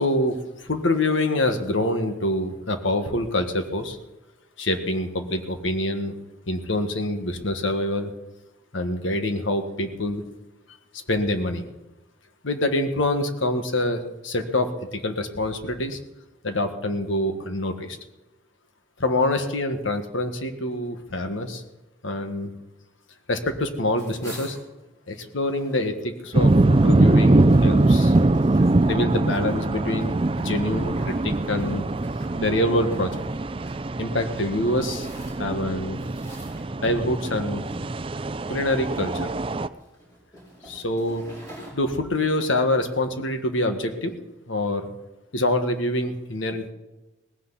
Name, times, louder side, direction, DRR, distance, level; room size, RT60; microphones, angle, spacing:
voice 1, 0.0-4.0 4.6-6.1 6.5-8.1 8.7-10.2 11.1-11.6 12.4-16.0 16.4-18.0 19.0-21.6 22.0-22.5 23.3-24.6 25.1-28.1 28.8-31.8 32.4-33.1 34.0-35.1 35.4-36.0 36.8-37.7 38.5-39.3 40.6-41.2 41.7-44.1 44.5-44.8 45.3-46.7, left 1 dB, 85° left, 7 dB, 1.6 m, -25 dB
sound 1, 23.9-25.8 26.2-33.8 34.4-35.6 36.0-37.2 37.7-37.9 38.3-39.1 39.7-41.7, right 1 dB, 20° left, 5.6 m, -45 dB
sound 2, 26.3-39.7, right 2 dB, 25° right, 0.4 m, -22 dB
18.0 x 16.0 x 4.1 m, 1.0 s
head